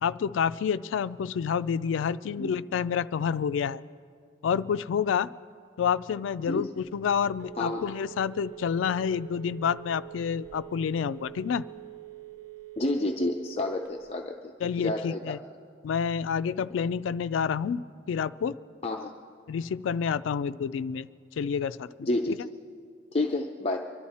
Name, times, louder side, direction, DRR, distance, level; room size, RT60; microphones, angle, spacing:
voice 1, 0.0-3.8 4.4-5.3 5.8-11.6 14.6-15.4 15.8-18.6 19.5-21.1 21.4-22.1, left 7 dB, 85° left, 15 dB, 0.3 m, -28 dB
Telephone, 6.8-14.2, right 15 dB, 80° right, 0.8 m, -45 dB
voice 2, 12.8-14.5 14.8-15.4 18.8-19.1 22.0-22.4 23.1-23.8, left 2 dB, 30° left, 2 dB, 0.5 m, -29 dB
24.0 x 12.0 x 4.2 m, 2.2 s
head